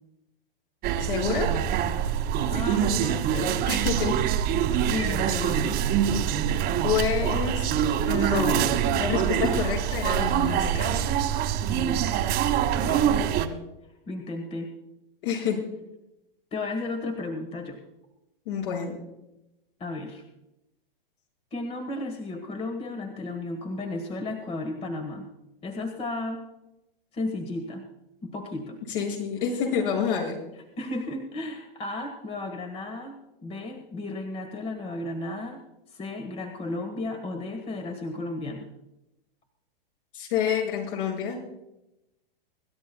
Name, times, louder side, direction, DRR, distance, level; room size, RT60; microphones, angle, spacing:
sound 1, 0.8-13.5, right 9 dB, 35° right, 1.5 m, -25 dB
voice 1, 1.0-1.5 3.7-4.1 6.8-7.7 8.0-8.7 9.0-11.1 15.2-15.6 18.5-19.0 28.9-30.3 40.1-41.4, left 7 dB, 60° left, -1 dB, 6.4 m, -28 dB
voice 2, 2.4-3.7 4.9-5.8 11.7-12.2 12.8-13.1 14.1-14.7 16.5-17.8 19.8-20.2 21.5-25.3 25.6-26.4 27.1-27.8 28.2-28.8 29.6-29.7 30.8-33.2 33.4-35.6 35.9-38.7, left 2 dB, 20° left, 5 dB, 1.6 m, -34 dB
26.0 x 13.0 x 2.3 m, 0.91 s
hypercardioid pair, 120°, 29 cm